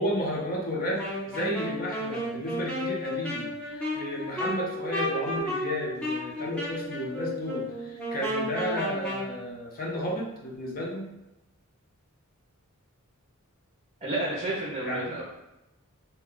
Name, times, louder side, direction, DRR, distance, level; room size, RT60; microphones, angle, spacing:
voice 1, 0.0-11.1 14.8-15.0, equal, 40° left, -2 dB, 0.7 m, -32 dB
Wind instrument woodwind instrument, 1.0-9.3, left 1 dB, 5° left, 0.6 m, -32 dB
voice 2, 14.0-15.2, right 2 dB, 30° right, -5 dB, 0.6 m, -30 dB
2.8 x 2.2 x 3.6 m, 0.94 s
head